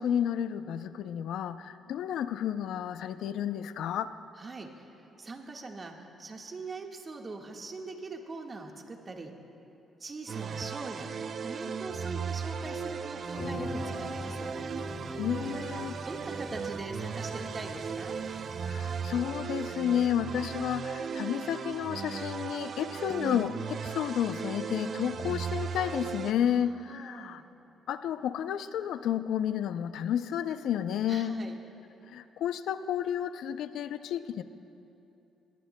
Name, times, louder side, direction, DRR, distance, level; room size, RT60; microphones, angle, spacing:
voice 1, 0.0-4.1 15.2-15.9 18.7-27.4 27.9-31.4 32.1-34.4, left 9 dB, 80° left, 12 dB, 0.4 m, -31 dB
voice 2, 4.4-4.8 5.2-9.3 10.0-11.1 11.4-14.5 16.0-18.2 26.4-27.4 31.1-31.6, right 3 dB, 35° right, 2 dB, 1.5 m, -42 dB
sound 1, 10.3-26.3, right 6 dB, 50° right, 0.5 m, -37 dB
sound 2, 13.3-19.2, left 1 dB, 50° left, 2.0 m, -42 dB
21.0 x 19.0 x 2.2 m, 2.9 s
cardioid pair, 90°, 0 cm